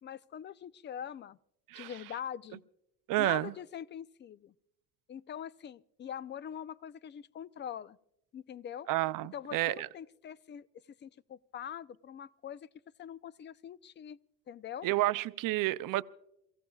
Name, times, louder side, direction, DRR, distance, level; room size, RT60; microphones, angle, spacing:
voice 1, 0.0-1.4 1.7-2.6 3.2-4.5 5.1-8.0 8.3-8.9 9.3-10.7 11.0-12.7 13.0-14.2 14.5-14.9, left 9 dB, 30° left, 0.5 m, -43 dB
voice 2, 3.1-3.5 8.9-9.9 14.8-16.0, right 17 dB, 65° right, 0.6 m, -30 dB
28.5 x 16.0 x 2.3 m
cardioid pair, 100°, 35 cm